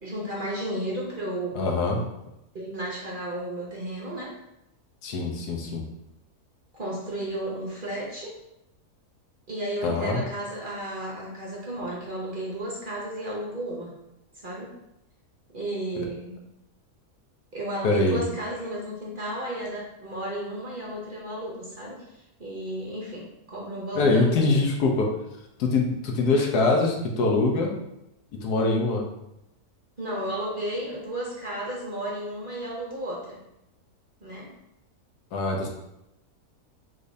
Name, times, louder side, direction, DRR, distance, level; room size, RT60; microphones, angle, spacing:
voice 1, 0.0-1.6 2.5-4.3 6.7-8.3 9.5-13.9 14.4-14.7 15.5-16.4 17.5-24.6 30.0-33.4 34.2-34.5, right 1 dB, 40° right, -4 dB, 0.9 m, -33 dB
voice 2, 1.5-2.0 5.0-5.8 9.8-10.2 16.0-16.1 17.8-18.2 23.9-25.1 25.6-27.8 28.4-29.1 35.3-35.7, left 3 dB, 80° left, 1 dB, 1.4 m, -23 dB
4.9 x 4.0 x 2.7 m, 0.87 s
omnidirectional pair, 1.7 m